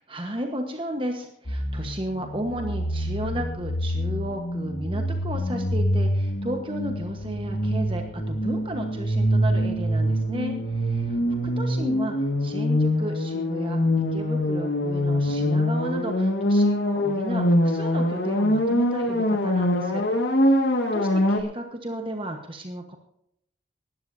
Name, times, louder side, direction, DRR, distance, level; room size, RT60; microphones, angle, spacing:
voice 1, 0.1-12.1 12.4-13.8 14.1-20.0 20.4-23.0, right 1 dB, 30° right, 3 dB, 1.2 m, -34 dB
sound 1, 1.5-21.4, equal, 70° left, 1.8 m, -24 dB
18.5 x 12.5 x 2.7 m, 0.75 s
head